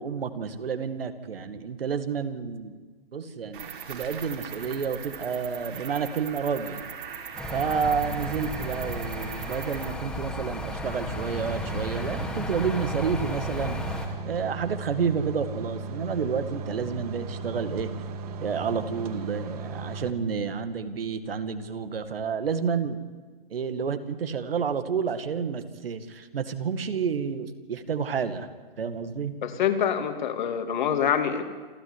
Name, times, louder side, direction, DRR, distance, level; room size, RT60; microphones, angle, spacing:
voice 1, 0.0-2.7 3.1-6.9 7.5-17.9 18.4-23.0 23.5-28.5 28.8-29.4, right 6 dB, 75° right, 10 dB, 2.2 m, -30 dB
Cricket, 3.5-9.9, right 7 dB, 60° right, 4.3 m, -40 dB
sound 1, 7.3-14.1, left 1 dB, ahead, 2.3 m, -34 dB
sound 2, 11.4-20.1, right 3 dB, 40° right, 2.1 m, -36 dB
voice 2, 29.4-31.4, left 8 dB, 50° left, 7 dB, 2.7 m, -25 dB
27.5 x 13.0 x 9.8 m, 1.4 s
hypercardioid pair, 145°, 29 cm